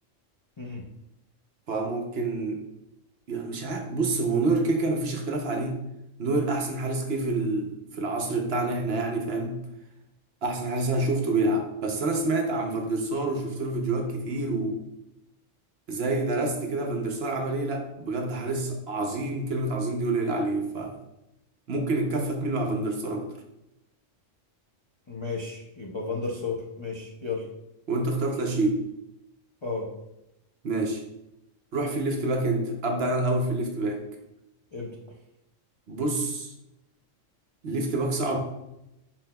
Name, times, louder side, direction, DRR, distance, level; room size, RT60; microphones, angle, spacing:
voice 1, 1.7-2.7 3.3-5.8 6.2-9.6 10.4-14.8 15.9-21.0 21.7-23.3 27.9-28.8 30.6-31.0 31.7-34.0 35.9-36.5 37.6-38.4, right 2 dB, 60° right, 3 dB, 0.8 m, -27 dB
voice 2, 25.1-27.5 29.6-29.9 34.7-35.0, left 4 dB, 50° left, -2 dB, 0.3 m, -33 dB
5.8 x 4.1 x 2.2 m, 0.88 s
omnidirectional pair, 1.3 m